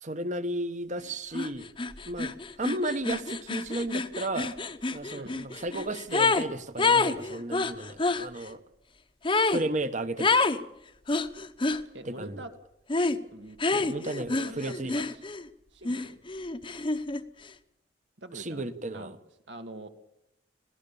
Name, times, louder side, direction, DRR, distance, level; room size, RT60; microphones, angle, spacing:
voice 1, 0.0-1.7 2.1-4.6 4.9-8.6 9.3-10.3 12.0-12.4 13.7-14.9 18.3-19.2, right 1 dB, 45° right, 1.2 m, -34 dB
sound 1, 1.3-1.5 1.8-6.5 6.8-8.2 9.2-9.6 10.2-10.6 11.1-11.8 12.9-13.2 13.6-15.5 15.8-17.2, left 3 dB, 30° left, 0.9 m, -27 dB
voice 2, 11.9-12.5 13.3-14.0 14.3-15.0 15.7-16.2 18.2-18.6 18.9-19.1 19.5-19.9, right 1 dB, 85° right, 2.0 m, -44 dB
26.0 x 17.0 x 7.0 m
head